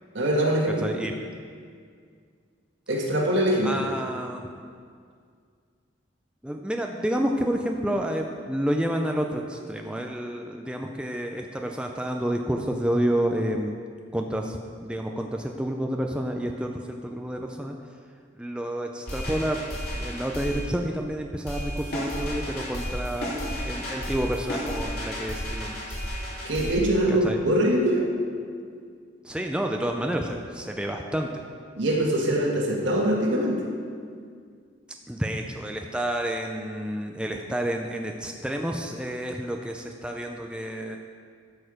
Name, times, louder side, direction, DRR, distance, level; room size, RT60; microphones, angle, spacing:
voice 1, 0.1-0.9 2.9-3.8 26.4-28.0 31.8-33.6, right 1 dB, 70° right, -1 dB, 1.7 m, -23 dB
voice 2, 0.8-1.1 3.6-4.4 6.4-13.8 14.1-17.7 18.4-25.9 27.1-27.4 29.2-31.4 35.1-41.0, right 1 dB, 5° right, 2 dB, 0.5 m, -29 dB
sound 1, 19.1-20.6 21.5-26.8, equal, 50° left, 3.1 m, -32 dB
12.5 x 6.6 x 5.0 m, 2.1 s
head